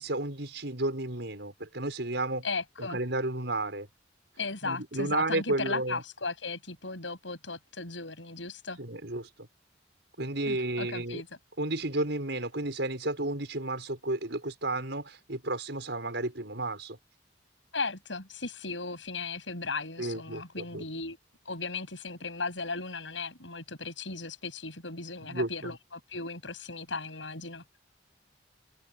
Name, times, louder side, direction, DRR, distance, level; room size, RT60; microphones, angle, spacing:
voice 1, 0.0-2.5 2.8-3.9 4.6-6.0 8.8-9.3 10.2-11.2 11.6-17.0 20.0-20.8 25.2-25.7, right 2 dB, 70° right, 5.9 m, -32 dB
voice 2, 2.4-3.0 4.4-8.8 10.5-11.3 17.7-21.2 21.5-27.6, left 3 dB, 85° left, 7.6 m, -36 dB
head